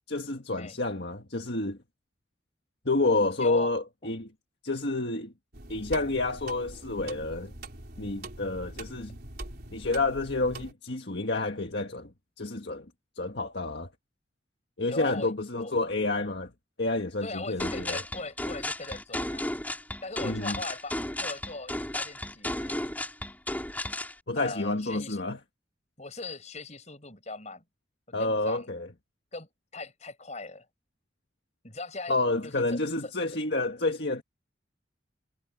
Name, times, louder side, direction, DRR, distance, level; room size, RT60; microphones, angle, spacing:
voice 1, 0.1-1.8 2.8-4.3 4.6-5.3 5.7-7.5 8.0-9.2 9.7-12.1 12.4-12.9 13.2-13.9 14.8-16.5 16.8-18.0 20.2-20.6 24.3-25.4 28.1-28.9 32.1-34.2, left 2 dB, 60° left, 1.8 m, -29 dB
voice 2, 3.4-3.7 4.0-4.1 14.9-15.7 17.2-19.6 20.0-22.9 24.4-25.2 26.0-27.6 28.2-28.7 29.3-30.7 31.6-32.1 32.4-33.1, left 3 dB, 40° left, 7.2 m, -40 dB
sound 1, 5.5-10.7, right 2 dB, 55° right, 4.4 m, -43 dB
sound 2, 17.6-24.1, left 1 dB, 10° left, 3.9 m, -34 dB
head